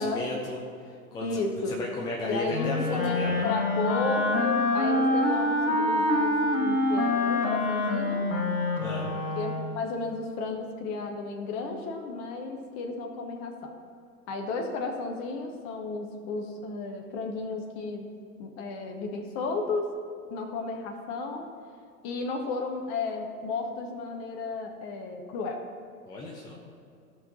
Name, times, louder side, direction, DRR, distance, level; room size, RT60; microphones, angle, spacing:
voice 1, 0.0-1.4 1.7-3.4 8.8-9.1 26.1-26.6, left 2 dB, 10° left, -2 dB, 0.5 m, -35 dB
voice 2, 1.2-1.7 2.2-8.3 9.4-13.7 14.3-18.1 18.4-19.9 20.3-21.5 22.0-25.6, left 3 dB, 30° left, 3 dB, 1.0 m, -33 dB
Wind instrument woodwind instrument, 2.5-9.8, left 2 dB, 60° left, 1.5 m, -26 dB
14.5 x 5.6 x 4.1 m, 2.4 s
figure-of-eight pair, 100°, 46 cm